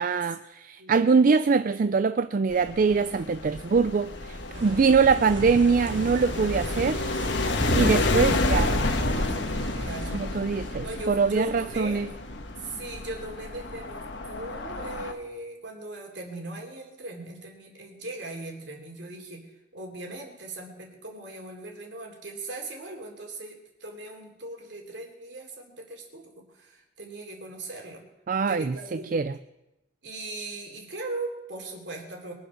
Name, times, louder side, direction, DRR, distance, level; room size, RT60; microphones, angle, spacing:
voice 1, 0.0-7.0 7.7-8.7 10.1-12.1 28.3-29.3, right 5 dB, 50° right, 12 dB, 0.4 m, -23 dB
voice 2, 0.8-1.3 9.8-10.2 10.8-12.1 12.6-28.0 28.5-29.2 30.0-32.3, right 2 dB, 70° right, 2 dB, 3.4 m, -39 dB
sound 1, 2.5-15.1, left 2 dB, 70° left, 1.4 m, -30 dB
sound 2, 4.5-10.2, right 2 dB, 85° right, 1.3 m, -33 dB
22.5 x 7.9 x 6.5 m, 0.94 s
head